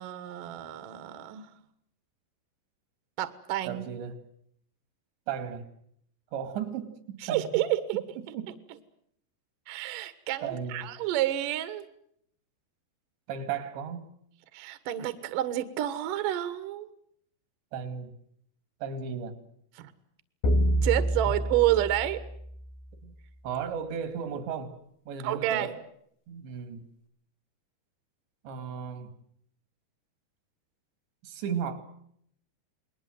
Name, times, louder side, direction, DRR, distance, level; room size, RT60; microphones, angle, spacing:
voice 1, 0.0-1.5 3.2-3.8 7.2-8.0 9.7-11.9 14.5-16.9 19.8-19.9 20.8-22.2 25.2-25.7, right 13 dB, 60° right, 11 dB, 2.6 m, -29 dB
voice 2, 3.6-4.2 5.3-5.7 6.3-7.5 7.9-8.1 8.3-8.6 10.4-10.9 13.3-14.0 17.7-18.1 18.8-19.4 21.2-21.3 23.0-23.1 23.4-24.8 25.1-25.7 26.3-26.8 28.4-29.1 31.2-31.8, right 7 dB, 80° right, 9 dB, 4.5 m, -35 dB
sound 1, 20.4-22.9, right 1 dB, 65° left, 3.1 m, -27 dB
29.0 x 21.0 x 7.8 m, 0.71 s
omnidirectional pair, 5.0 m